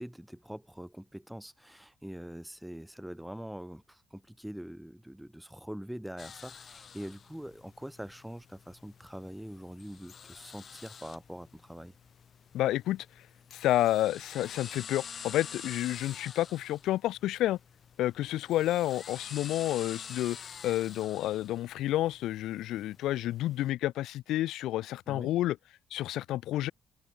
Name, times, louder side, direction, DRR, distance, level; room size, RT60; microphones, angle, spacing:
voice 1, 0.0-11.9 25.1-25.3, equal, 5° right, 3.7 m, -44 dB
sound 1, 6.2-23.7, left 7 dB, 50° left, 3.2 m, -48 dB
voice 2, 12.5-13.1 13.5-17.6 18.0-20.4 20.6-25.6 25.9-26.7, left 14 dB, 85° left, 2.4 m, -30 dB
open air
cardioid pair, 90°, 0 cm